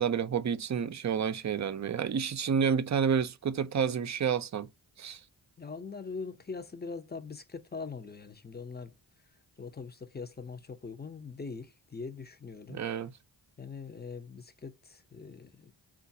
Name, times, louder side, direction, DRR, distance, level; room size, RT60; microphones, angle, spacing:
voice 1, 0.0-4.7 5.0-5.2 12.7-13.1, right 7 dB, 40° right, 0.5 m, -29 dB
voice 2, 5.6-8.9 9.6-12.8 13.6-15.7, left 4 dB, 20° left, 0.7 m, -42 dB
3.7 x 2.5 x 2.7 m
cardioid pair, 45°, 47 cm